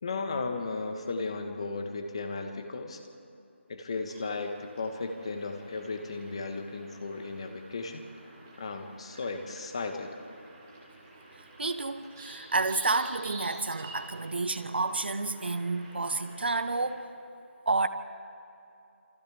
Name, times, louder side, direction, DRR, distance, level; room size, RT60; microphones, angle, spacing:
voice 1, 0.0-3.0 3.7-8.0 8.6-10.2, left 3 dB, 25° left, 1.4 m, -35 dB
sound 1, 4.1-16.9, right 2 dB, 15° right, 2.8 m, -50 dB
voice 2, 11.6-17.1 17.7-17.9, right 3 dB, 55° right, 1.1 m, -30 dB
28.0 x 26.5 x 3.5 m
figure-of-eight pair, 175°, 7 cm